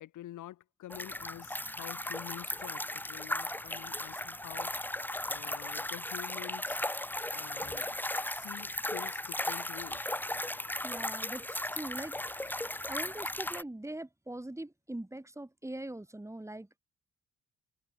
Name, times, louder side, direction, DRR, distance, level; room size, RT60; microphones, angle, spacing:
voice 1, 0.0-4.8 5.3-6.8 7.3-10.0, left 13 dB, 80° left, 5.6 m, -48 dB
sound 1, 0.9-13.6, left 1 dB, 5° left, 2.0 m, -36 dB
voice 2, 10.8-12.6 12.9-16.8, right 1 dB, 10° right, 4.6 m, -42 dB
open air
cardioid pair, 90°, 30 cm